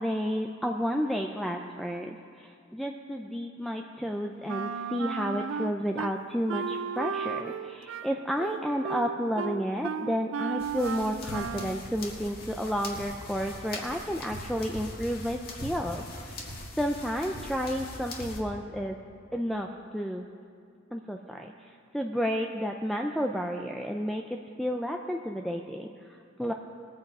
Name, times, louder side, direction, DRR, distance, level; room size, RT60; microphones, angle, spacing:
voice 1, 0.0-19.0 19.3-20.3 20.9-26.5, equal, ahead, 2 dB, 0.4 m, -31 dB
Wind instrument woodwind instrument, 4.5-6.1 6.5-11.8, right 6 dB, 75° right, 0.4 m, -34 dB
sound 1, 10.6-18.4, left 2 dB, 50° left, 1.7 m, -41 dB
21.0 x 7.6 x 4.8 m, 2.4 s
head